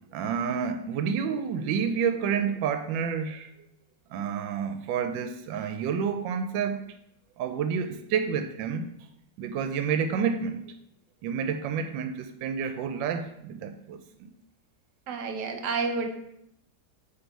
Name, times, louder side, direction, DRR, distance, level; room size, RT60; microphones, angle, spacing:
voice 1, 0.1-3.5 4.1-6.8 7.4-8.9 9.4-10.6 11.2-14.3, right 6 dB, 85° right, 8 dB, 1.3 m, -29 dB
voice 2, 15.1-16.1, right 4 dB, 65° right, 5 dB, 1.4 m, -29 dB
8.0 x 3.4 x 4.6 m, 0.77 s
omnidirectional pair, 2.0 m